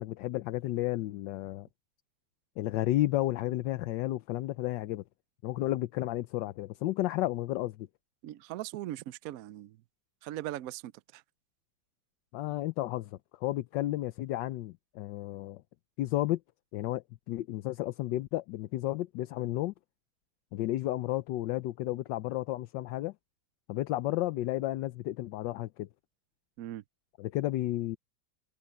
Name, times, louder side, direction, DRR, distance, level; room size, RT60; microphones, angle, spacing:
voice 1, 0.0-1.7 2.6-5.0 5.4-7.9 12.3-13.1 13.4-15.6 16.0-16.4 16.7-19.7 20.5-23.1 23.7-25.9 27.2-28.0, left 15 dB, 80° left, 1.3 m, -32 dB
voice 2, 8.2-9.8 10.2-11.2 26.6-26.8, right 14 dB, 75° right, 0.8 m, -40 dB
omnidirectional pair, 2.0 m